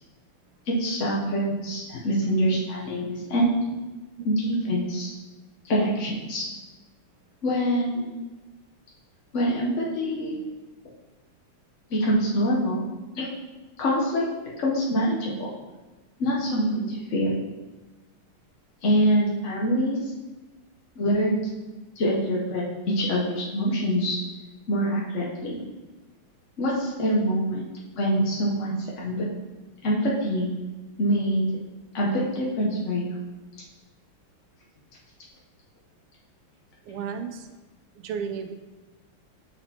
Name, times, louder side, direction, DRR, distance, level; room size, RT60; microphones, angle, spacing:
voice 1, 0.7-3.6 4.2-5.1 5.6-6.4 7.4-8.1 9.3-10.4 11.9-12.8 13.1-13.3 13.8-14.2 14.6-15.5 16.2-17.3 18.8-20.1 21.0-21.4 22.0-24.2 24.7-25.6 26.6-27.6 27.9-29.3 29.8-30.5 31.0-31.5 31.9-33.1, equal, 60° left, -4 dB, 0.8 m, -25 dB
voice 2, 36.8-37.6 37.9-38.5, right 6 dB, 90° right, 6 dB, 1.6 m, -33 dB
8.8 x 4.3 x 2.8 m, 1.1 s
omnidirectional pair, 2.4 m